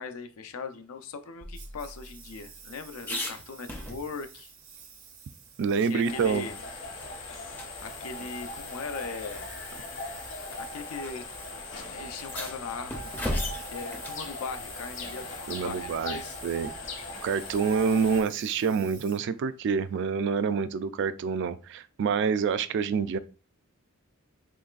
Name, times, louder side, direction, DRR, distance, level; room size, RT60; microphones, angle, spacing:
voice 1, 0.0-4.5 5.8-6.6 7.8-9.5 10.6-11.2 11.7-13.4 13.6-16.4, left 4 dB, 90° left, 0.5 m, -39 dB
sound 1, 1.4-4.4 4.8-4.9 5.2-6.7 7.0-7.1 7.5-7.7 8.7-8.8 9.7-10.0 11.0-11.1 11.4-11.5 12.1-14.3 16.5-17.0, left 1 dB, 10° left, 0.4 m, -37 dB
Engine, 1.5-20.0, right 7 dB, 75° right, 0.8 m, -52 dB
voice 2, 5.6-6.4 15.5-16.2 16.4-16.7 17.2-23.2, right 6 dB, 55° right, 0.3 m, -27 dB
sound 2, 6.0-18.2, left 2 dB, 60° left, 1.0 m, -39 dB
3.9 x 3.1 x 2.4 m
head